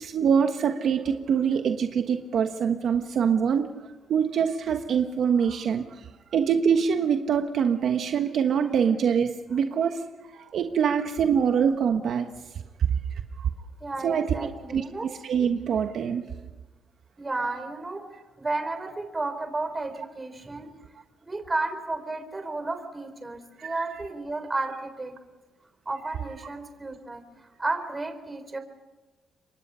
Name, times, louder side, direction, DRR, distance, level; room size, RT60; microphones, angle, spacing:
voice 1, 0.0-3.7 4.1-12.3 13.4-13.5 14.0-16.3 23.6-23.7, right 7 dB, 65° right, 6 dB, 1.3 m, -24 dB
voice 2, 13.8-15.0 17.2-18.0 18.4-20.7 21.2-25.1 25.9-28.6, right 2 dB, 20° right, 8 dB, 4.0 m, -32 dB
27.5 x 23.5 x 5.7 m, 1.2 s
cardioid pair, 90°, 0 cm